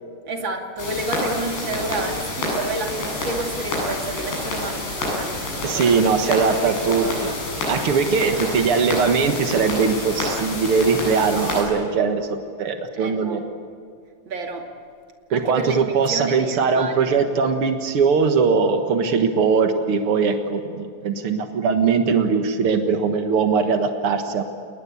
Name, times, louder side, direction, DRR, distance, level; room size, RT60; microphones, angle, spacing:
voice 1, 0.3-5.9 6.6-7.1 8.1-8.5 13.0-13.4 14.3-14.7 15.3-17.1, right 2 dB, 35° right, 3 dB, 2.5 m, -30 dB
sound 1, 0.8-11.6, left 2 dB, 75° left, 10.5 m, -28 dB
voice 2, 5.6-7.3 7.7-13.4 15.3-24.4, right 5 dB, 80° right, 6 dB, 1.2 m, -20 dB
29.5 x 20.0 x 8.5 m, 2.3 s
omnidirectional pair, 4.9 m